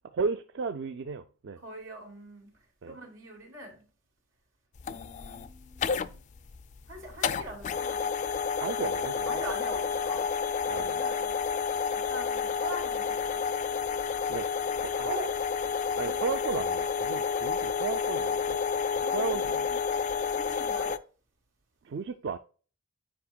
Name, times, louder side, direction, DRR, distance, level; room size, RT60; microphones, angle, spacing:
voice 1, 0.1-1.6 2.8-3.0 8.6-9.4 10.7-11.0 14.3-14.5 14.8-15.2 16.0-18.6 19.0-19.7 21.8-22.4, right 5 dB, 60° right, 0.4 m, -34 dB
voice 2, 1.6-2.5 2.9-3.8 4.8-6.2 6.9-8.1 9.3-11.4 11.9-13.4 15.0-15.3 16.0-16.2 19.0-19.8 20.3-20.9, right 1 dB, 85° right, 2.8 m, -43 dB
sound 1, 4.8-21.0, left 6 dB, 35° left, 0.3 m, -30 dB
8.6 x 5.0 x 2.2 m
head